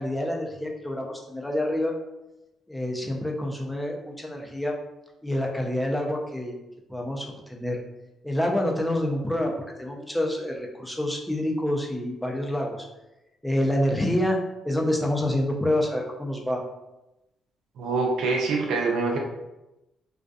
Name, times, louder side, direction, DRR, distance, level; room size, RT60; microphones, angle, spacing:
voice 1, 0.0-1.9 2.7-4.7 5.2-6.6 6.9-7.8 8.2-9.5 9.8-12.9 13.4-14.4 14.6-16.6, left 1 dB, 5° left, 0 dB, 0.5 m, -27 dB
voice 2, 17.8-19.2, right 3 dB, 80° right, 1 dB, 0.5 m, -25 dB
2.5 x 2.3 x 2.3 m, 0.96 s
cardioid pair, 90°, 0 cm